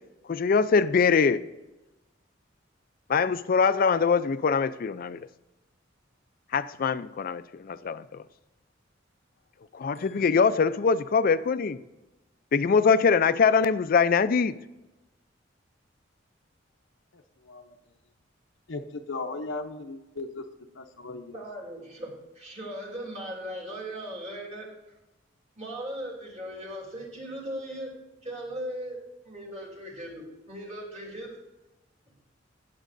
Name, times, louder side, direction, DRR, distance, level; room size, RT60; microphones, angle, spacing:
voice 1, 0.3-1.4 3.1-5.2 6.5-8.2 9.7-11.8 12.5-14.5, left 5 dB, 50° left, 0.4 m, -23 dB
voice 2, 17.1-17.7 18.7-20.4 20.7-21.4, left 3 dB, 85° left, 0.7 m, -37 dB
voice 3, 21.3-24.7 25.6-27.9 28.2-31.4, equal, 35° right, 3.0 m, -38 dB
17.0 x 7.5 x 2.6 m
head